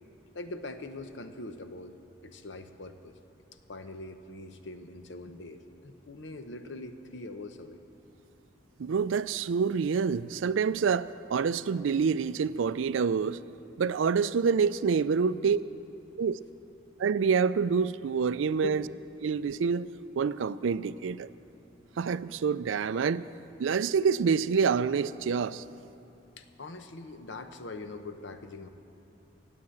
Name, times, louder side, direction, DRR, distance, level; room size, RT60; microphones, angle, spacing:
voice 1, 0.3-2.0 2.2-3.2 3.7-7.8 15.3-15.4 18.6-18.9 26.4-28.7, left 2 dB, 70° left, 0.8 m, -42 dB
voice 2, 8.8-13.4 13.8-15.6 16.2-16.4 17.0-18.8 19.2-21.3 22.0-23.3 23.6-25.6, right 6 dB, 85° right, 0.4 m, -27 dB
17.0 x 8.9 x 7.7 m
head